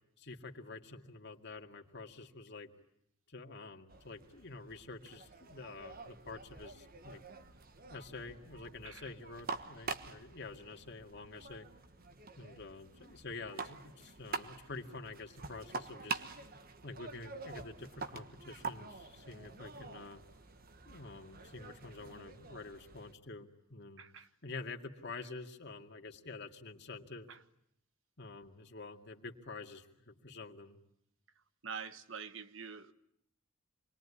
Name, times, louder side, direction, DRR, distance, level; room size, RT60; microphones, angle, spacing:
voice 1, 0.2-2.7 3.3-7.2 7.9-11.7 12.4-16.2 16.8-20.2 20.9-24.0 24.4-27.3 28.2-30.8, left 3 dB, 55° left, 2.3 m, -48 dB
sound 1, 3.9-23.1, right 4 dB, 45° right, 1.3 m, -47 dB
voice 2, 24.0-24.3 27.3-27.4 31.6-32.9, right 6 dB, 65° right, 1.3 m, -46 dB
27.5 x 22.0 x 10.0 m
head